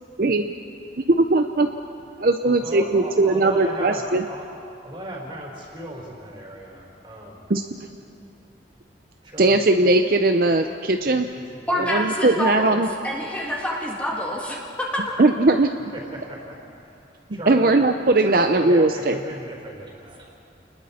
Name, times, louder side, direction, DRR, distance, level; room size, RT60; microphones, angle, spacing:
voice 1, 1.0-1.7 2.2-4.3 7.5-7.9 9.4-11.3 11.8-12.9 15.2-15.7 17.3-19.2, right 2 dB, 50° right, 6 dB, 0.6 m, -19 dB
voice 2, 2.4-4.5 4.8-7.3 9.3-9.6 11.1-11.2 11.7-11.9 15.9-16.5 17.4-17.9 18.2-20.2, equal, 25° right, -1 dB, 4.1 m, -35 dB
voice 3, 11.7-15.2, equal, 5° left, -3 dB, 2.4 m, -27 dB
30.0 x 20.5 x 4.3 m, 2.6 s
head